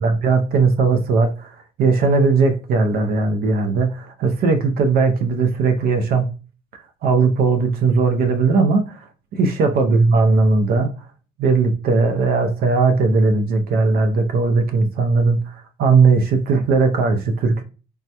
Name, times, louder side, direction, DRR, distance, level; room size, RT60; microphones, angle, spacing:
voice 1, 0.0-6.3 7.0-9.0 9.3-10.9 11.4-17.6, right 4 dB, 65° right, 0.5 m, -18 dB
3.3 x 2.1 x 2.8 m
cardioid pair, 110°, 17 cm